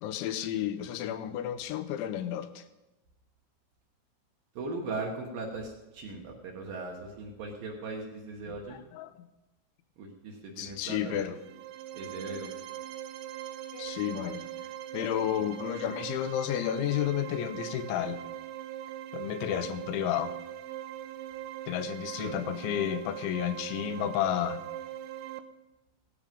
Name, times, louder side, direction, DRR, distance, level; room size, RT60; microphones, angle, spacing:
voice 1, 0.0-2.6 8.5-9.3 10.6-11.3 13.7-14.5 14.9-18.2 19.1-20.3 21.7-24.6, left 11 dB, 85° left, 11 dB, 3.1 m, -32 dB
voice 2, 4.6-8.8 10.0-11.4 11.9-12.5 15.3-15.4 15.8-15.9 22.2-22.3, right 3 dB, 60° right, 0 dB, 2.7 m, -39 dB
sound 1, 11.3-25.4, right 12 dB, 90° right, 3.2 m, -41 dB
17.5 x 13.0 x 5.3 m, 1.0 s
omnidirectional pair, 5.3 m